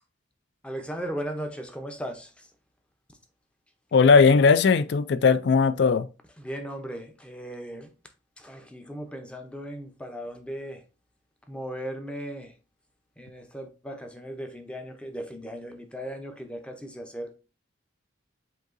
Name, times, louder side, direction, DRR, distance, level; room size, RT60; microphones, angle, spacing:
voice 1, 0.6-2.5 6.4-7.9 8.4-10.8 11.5-12.5 13.2-17.3, equal, 5° left, 0.5 m, -37 dB
voice 2, 3.9-6.1, left 5 dB, 65° left, 0.3 m, -18 dB
7.6 x 2.7 x 2.5 m
head